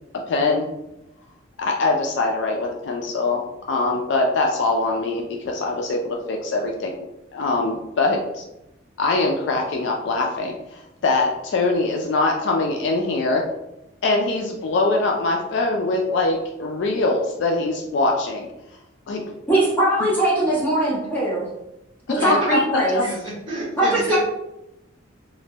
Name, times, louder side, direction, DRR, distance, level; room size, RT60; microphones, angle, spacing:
voice 1, 0.3-0.7 1.6-3.4 3.7-6.9 7.3-8.4 9.0-13.4 14.0-18.5 19.1-19.3 22.2-23.0, left 3 dB, 65° left, 1 dB, 0.3 m, -23 dB
voice 2, 19.5-21.5 22.1-23.0 23.8-24.2, right 1 dB, 10° left, -9 dB, 1.1 m, -20 dB
voice 3, 22.2-22.5 22.9-24.2, right 2 dB, 25° right, -10 dB, 1.0 m, -30 dB
3.0 x 2.2 x 2.7 m, 0.90 s
head